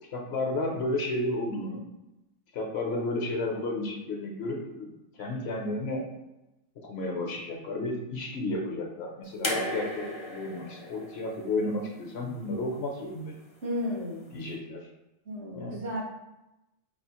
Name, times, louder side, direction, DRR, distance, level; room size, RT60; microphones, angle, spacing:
voice 1, 0.1-1.8 2.5-4.9 5.2-6.0 6.8-13.3 14.3-14.9 15.6-15.8, left 2 dB, 65° left, 1 dB, 0.8 m, -32 dB
sound 1, 9.4-12.6 13.8-13.9, left 1 dB, 35° left, 0.5 m, -35 dB
voice 2, 13.6-14.3 15.3-16.0, left 1 dB, 65° right, -4 dB, 1.5 m, -33 dB
4.7 x 2.4 x 2.9 m, 0.94 s
omnidirectional pair, 1.3 m